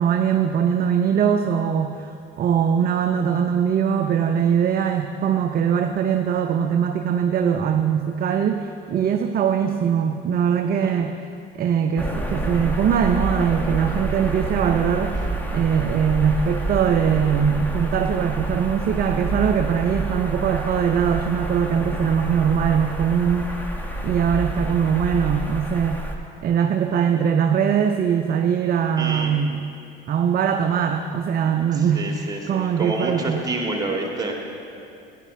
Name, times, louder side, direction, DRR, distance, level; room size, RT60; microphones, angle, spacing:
voice 1, 0.0-11.2 11.6-15.2 15.5-23.5 24.0-26.0 26.4-29.6 30.1-33.5, right 7 dB, 30° right, 6 dB, 0.5 m, -21 dB
sound 1, 12.0-26.2, right 2 dB, 5° left, 1.2 m, -28 dB
voice 2, 29.0-29.3 31.7-34.5, right 2 dB, 10° right, 0 dB, 2.1 m, -28 dB
14.0 x 10.0 x 3.7 m, 2.6 s
figure-of-eight pair, 65°, 30 cm